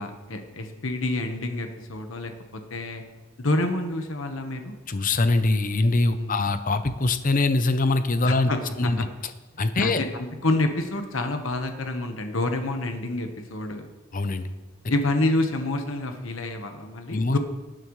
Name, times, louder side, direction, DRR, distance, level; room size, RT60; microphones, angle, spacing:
voice 1, 0.0-2.3 2.7-3.0 3.4-4.7 6.1-6.4 8.3-9.0 9.8-13.9 14.9-17.4, left 2 dB, 70° left, 5 dB, 1.3 m, -28 dB
voice 2, 4.9-8.5 8.8-9.1 9.6-10.0 14.1-14.4 17.1-17.4, left 2 dB, 40° left, 10 dB, 0.7 m, -23 dB
18.5 x 9.1 x 3.2 m, 1.2 s
head